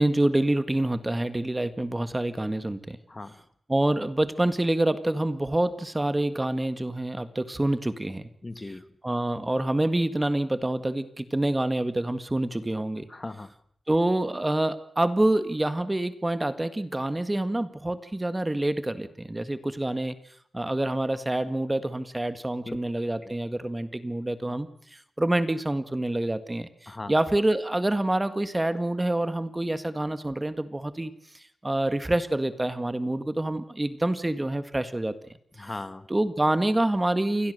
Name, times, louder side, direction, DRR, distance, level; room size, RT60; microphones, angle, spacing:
voice 1, 0.0-3.0 3.7-8.3 9.0-13.1 13.9-20.2 20.5-31.1 31.6-35.2 35.6-35.7 36.1-37.5, right 1 dB, 15° right, 11 dB, 1.8 m, -27 dB
voice 2, 3.1-3.4 8.4-9.0 13.1-13.5 22.6-22.8 23.2-23.3 26.9-27.1 35.5-36.1, left 2 dB, 25° left, 11 dB, 1.6 m, -38 dB
28.5 x 21.5 x 6.7 m, 0.63 s
wide cardioid pair, 95°, 0 cm